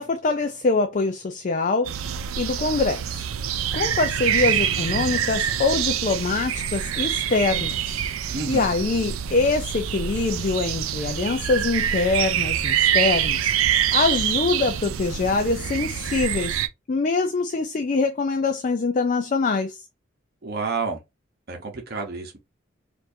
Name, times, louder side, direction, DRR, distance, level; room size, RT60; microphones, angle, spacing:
voice 1, 0.0-1.9 2.4-3.3 3.7-7.7 8.2-16.6 16.9-19.8, left 3 dB, 40° left, 0.4 m, -24 dB
sound 1, 1.8-16.7, right 9 dB, 85° right, 0.4 m, -25 dB
voice 2, 8.3-8.7 20.4-21.0 21.5-22.4, right 4 dB, 50° right, 0.9 m, -29 dB
4.4 x 2.6 x 2.7 m
head